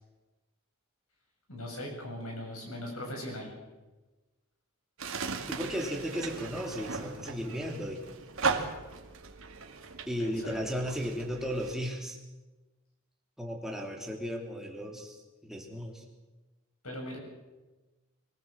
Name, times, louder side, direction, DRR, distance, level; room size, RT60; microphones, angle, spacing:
voice 1, 1.5-3.5 10.2-10.9 16.8-17.2, left 1 dB, 80° left, 1 dB, 7.7 m, -40 dB
sound 1, 5.0-11.7, right 4 dB, 70° right, 2.2 m, -37 dB
voice 2, 5.5-8.1 10.1-12.2 13.4-16.0, equal, ahead, 0 dB, 3.1 m, -35 dB
24.0 x 17.5 x 7.6 m, 1.2 s
head